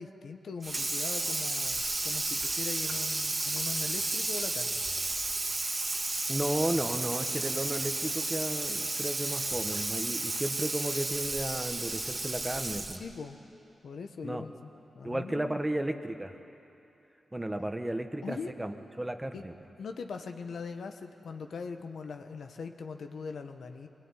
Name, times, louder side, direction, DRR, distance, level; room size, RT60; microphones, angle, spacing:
voice 1, 0.0-4.8 13.0-13.4 13.8-14.7 14.9-15.6 17.5-17.7 18.2-18.5 19.3-19.4 19.8-23.9, left 5 dB, 75° left, 6 dB, 1.3 m, -41 dB
Water tap faucet / Sink (filling or washing), 0.6-13.1, right 2 dB, 35° right, 1.9 m, -32 dB
voice 2, 6.3-13.0 14.2-14.4 15.0-16.3 17.3-19.5, right 1 dB, 15° right, 7 dB, 1.4 m, -34 dB
24.5 x 19.0 x 9.8 m, 2.9 s
cardioid pair, 80°, 0 cm